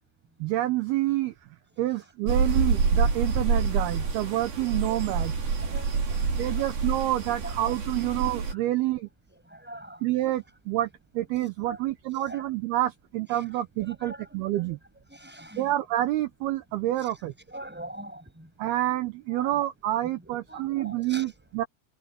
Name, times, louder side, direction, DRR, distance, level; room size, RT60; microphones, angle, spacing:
voice 1, 0.4-1.3 1.8-5.3 6.4-9.1 10.0-14.8 15.6-17.3 18.6-21.7, right 15 dB, 75° right, 2.7 m, -28 dB
sound 1, 2.3-8.5, right 5 dB, 55° right, 6.3 m, -27 dB
voice 2, 5.5-6.7 7.4-7.5 8.0-8.1 9.3-10.1 11.4-12.4 13.3-13.4 13.8-14.8 15.1-15.7 17.0-18.5 19.3-19.6 20.0-21.3, right 1 dB, ahead, 6.8 m, -44 dB
omnidirectional pair, 5.0 m